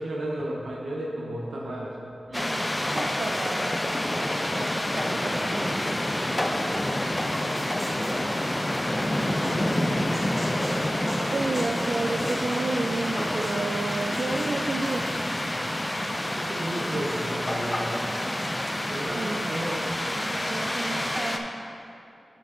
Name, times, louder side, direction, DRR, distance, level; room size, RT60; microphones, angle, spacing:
voice 1, 0.0-2.1 9.3-9.9 16.3-18.1 18.9-19.9, right 1 dB, 85° right, -3 dB, 1.1 m, -33 dB
sound 1, 2.3-21.4, left 1 dB, 20° left, 0.6 m, -28 dB
voice 2, 2.3-4.2 4.5-6.1 9.8-10.2 10.6-15.1 18.7-19.5 20.0-21.5, right 3 dB, 65° right, 1 dB, 0.4 m, -33 dB
sound 2, 7.3-9.1 9.4-9.8 10.1-13.5 13.9-15.1, equal, 25° right, 1.4 m, -40 dB
7.0 x 5.8 x 4.4 m, 2.6 s
cardioid pair, 45°, 0 cm